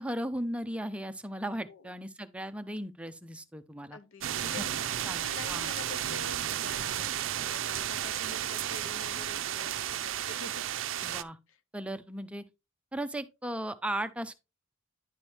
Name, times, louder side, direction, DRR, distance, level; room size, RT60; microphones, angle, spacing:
voice 1, 0.0-4.0 4.6-4.7 5.0-5.7 11.0-11.4 11.7-12.4 12.9-14.3, right 1 dB, 5° right, 0.5 m, -36 dB
voice 2, 3.9-4.7 5.0-10.6 11.5-11.6, left 4 dB, 75° left, 0.6 m, -46 dB
sound 1, 4.2-11.2, right 11 dB, 65° right, 0.5 m, -33 dB
10.5 x 4.4 x 3.3 m
head